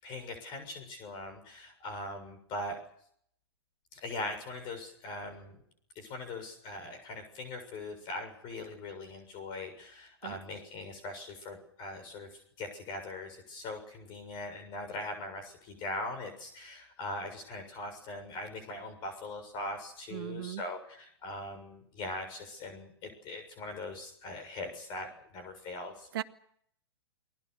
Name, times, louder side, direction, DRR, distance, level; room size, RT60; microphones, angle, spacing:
voice 1, 0.0-2.8 3.9-5.6 6.0-26.1, left 2 dB, 35° left, 8 dB, 7.1 m, -41 dB
voice 2, 20.1-20.6 26.1-26.2, right 13 dB, 55° right, 7 dB, 1.7 m, -37 dB
29.5 x 21.5 x 6.7 m, 0.67 s
hypercardioid pair, 120°, 14 cm